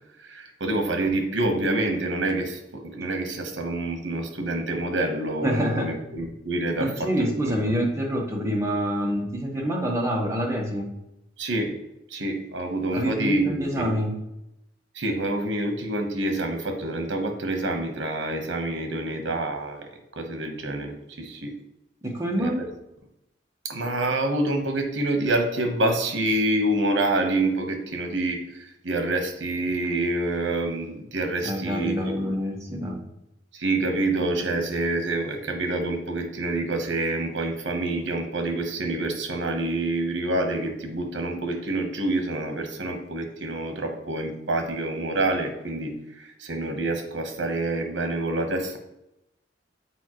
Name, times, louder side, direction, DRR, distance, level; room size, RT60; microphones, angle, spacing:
voice 1, 0.2-7.8 11.4-11.7 12.1-13.9 14.9-21.5 22.4-22.7 23.6-32.2 33.5-48.8, right 2 dB, 80° right, 4 dB, 1.1 m, -27 dB
voice 2, 5.4-5.9 6.8-10.9 12.9-14.1 22.0-22.6 31.4-33.0, equal, 15° right, -1 dB, 1.1 m, -26 dB
7.0 x 4.5 x 3.0 m, 0.86 s
head